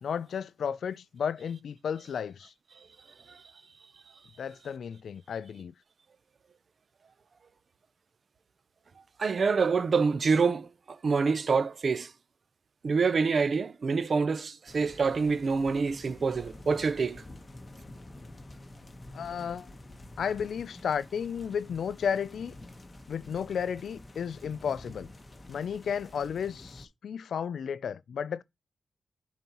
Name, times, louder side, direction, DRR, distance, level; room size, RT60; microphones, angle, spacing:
voice 1, 0.0-2.5 4.4-5.7 19.1-19.7 20.2-22.5 23.1-25.1 25.5-28.4, left 7 dB, 85° left, 0.3 m, -33 dB
voice 2, 9.2-12.1 12.8-17.2, right 5 dB, 50° right, 0.6 m, -26 dB
sound 1, 14.7-26.9, left 1 dB, 25° left, 1.0 m, -48 dB
10.5 x 4.1 x 2.9 m
wide cardioid pair, 125°, 0 cm